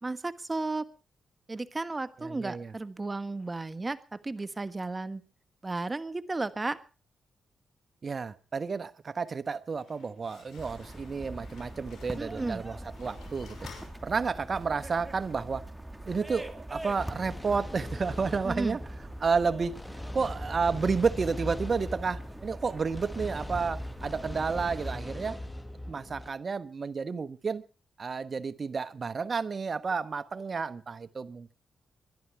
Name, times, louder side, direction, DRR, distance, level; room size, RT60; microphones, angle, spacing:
voice 1, 0.0-0.9 1.5-5.2 5.6-6.8 12.2-12.6 18.4-18.8, right 3 dB, 30° right, 1.4 m, -34 dB
voice 2, 2.2-2.7 8.0-13.7 14.0-15.7 16.0-18.8 19.2-25.4 25.9-27.6 28.0-31.5, right 5 dB, 50° right, 1.1 m, -31 dB
Slam, 9.6-14.7, left 6 dB, 75° left, 6.1 m, -54 dB
sound 1, 10.6-25.0, right 1 dB, 10° right, 2.6 m, -43 dB
sound 2, 17.0-26.3, left 1 dB, 15° left, 1.8 m, -40 dB
23.5 x 11.5 x 4.7 m
supercardioid pair, 55°, 0 cm